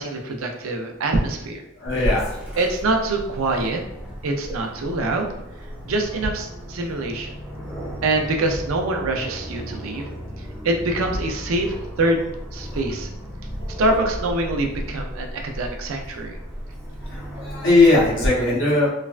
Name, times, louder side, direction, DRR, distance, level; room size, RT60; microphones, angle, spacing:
voice 1, 0.0-1.6 2.6-3.8 4.2-5.4 5.8-7.3 8.0-10.1 10.6-12.2 12.5-13.1 13.8-16.4, right 2 dB, 90° right, 3 dB, 0.5 m, -24 dB
voice 2, 1.8-2.6 13.6-13.8 17.1-18.9, left 2 dB, 65° left, -5 dB, 1.0 m, -19 dB
Aircraft, 1.9-18.3, equal, 5° right, 0.7 m, -34 dB
3.2 x 2.1 x 2.4 m, 0.85 s
head